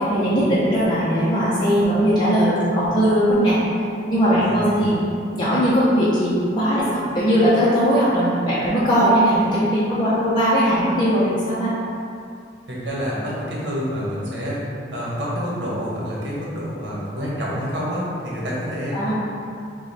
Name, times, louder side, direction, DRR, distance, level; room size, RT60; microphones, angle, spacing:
voice 1, 0.0-3.6 4.1-5.0 5.3-11.7 18.9-19.1, equal, 25° left, -10 dB, 0.6 m, -19 dB
voice 2, 4.4-4.9 12.7-19.1, equal, 75° right, -6 dB, 1.2 m, -28 dB
5.0 x 2.3 x 4.0 m, 2.5 s
head